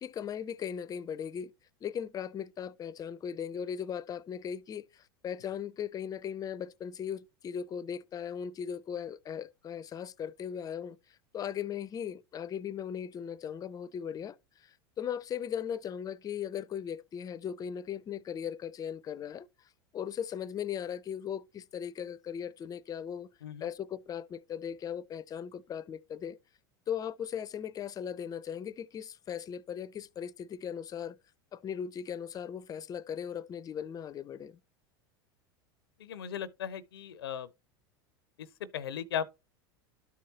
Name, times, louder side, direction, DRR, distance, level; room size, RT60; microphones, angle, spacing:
voice 1, 0.0-1.5 1.8-11.0 11.3-19.5 19.9-23.3 23.6-26.4 26.9-31.2 31.5-34.6, left 8 dB, 30° left, 0.6 m, -38 dB
voice 2, 36.0-37.5 38.4-38.5 38.7-39.3, left 8 dB, 80° left, 0.6 m, -37 dB
12.5 x 4.7 x 2.9 m
hypercardioid pair, 90°, 12 cm